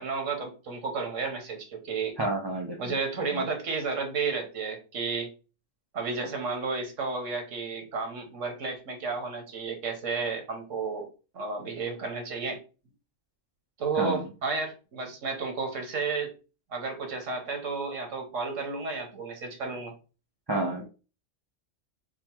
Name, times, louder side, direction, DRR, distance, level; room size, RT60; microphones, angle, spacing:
voice 1, 0.0-2.1 2.8-5.3 5.9-11.1 11.3-12.6 13.8-16.3 16.7-19.9, right 4 dB, 80° right, 1.4 m, -32 dB
voice 2, 2.2-2.9 3.3-3.4 14.0-14.2 20.5-20.8, right 2 dB, 35° right, 0.4 m, -29 dB
3.8 x 2.1 x 4.3 m
omnidirectional pair, 1.3 m